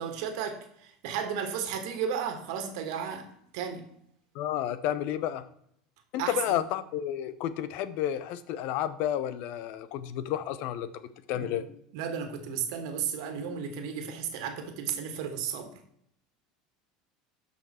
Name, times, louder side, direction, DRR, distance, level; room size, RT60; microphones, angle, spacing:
voice 1, 0.0-3.8 6.2-6.6 11.3-11.7 11.9-15.7, right 7 dB, 75° right, 6 dB, 1.7 m, -34 dB
voice 2, 4.3-5.5 6.1-10.9 11.3-11.6, left 11 dB, 65° left, 14 dB, 0.8 m, -31 dB
12.0 x 5.8 x 4.4 m, 0.71 s
supercardioid pair, 105°, 3 cm